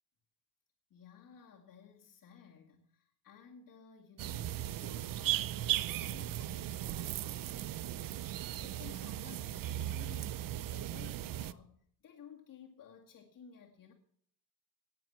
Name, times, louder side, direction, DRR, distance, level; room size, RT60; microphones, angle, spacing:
voice 1, 0.9-13.9, left 7 dB, 60° left, -2 dB, 2.2 m, -56 dB
sound 1, 4.2-11.5, right 13 dB, 60° right, 0.6 m, -37 dB
18.0 x 7.7 x 7.4 m, 0.63 s
cardioid pair, 150°, 37 cm